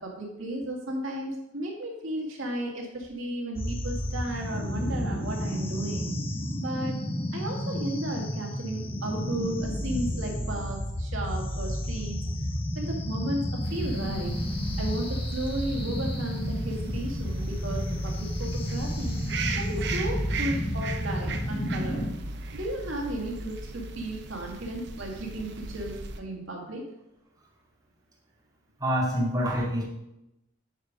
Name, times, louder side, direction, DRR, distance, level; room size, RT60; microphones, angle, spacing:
voice 1, 0.0-6.1 6.6-7.0 7.3-12.2 12.7-14.4 14.8-19.2 19.6-22.1 22.5-26.8, right 1 dB, 85° right, 0 dB, 2.0 m, -34 dB
sound 1, 3.6-22.1, left 1 dB, 30° left, 1.1 m, -31 dB
sound 2, 13.6-26.2, right 3 dB, 60° right, 0.8 m, -38 dB
voice 2, 28.8-29.8, equal, 20° right, -5 dB, 2.4 m, -26 dB
9.8 x 5.1 x 5.3 m, 0.88 s
head